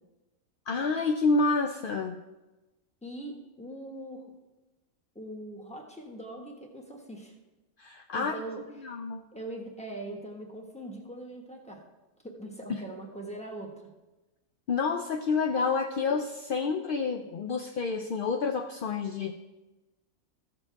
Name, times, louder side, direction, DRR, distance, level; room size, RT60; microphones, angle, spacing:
voice 1, 0.7-2.2 7.8-8.4 8.8-9.2 12.7-12.8 14.7-19.3, left 4 dB, 65° left, 4 dB, 0.5 m, -28 dB
voice 2, 3.0-4.3 5.1-7.3 8.1-8.9 9.3-11.8 12.2-13.9, right 1 dB, 5° left, 0 dB, 1.3 m, -41 dB
14.5 x 6.9 x 3.5 m, 1.1 s
omnidirectional pair, 1.4 m